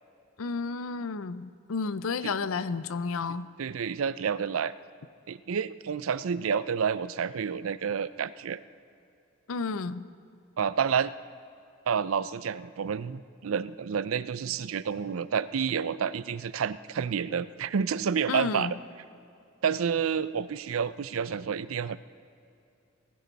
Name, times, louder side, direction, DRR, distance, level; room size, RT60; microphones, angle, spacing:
voice 1, 0.4-3.5 9.5-10.0 18.3-18.7, left 4 dB, 90° left, 15 dB, 0.6 m, -31 dB
voice 2, 3.6-4.7 5.3-8.6 10.6-11.1 11.9-18.7 19.6-22.0, right 7 dB, 85° right, 16 dB, 0.5 m, -29 dB
20.5 x 15.5 x 4.1 m, 2.7 s
head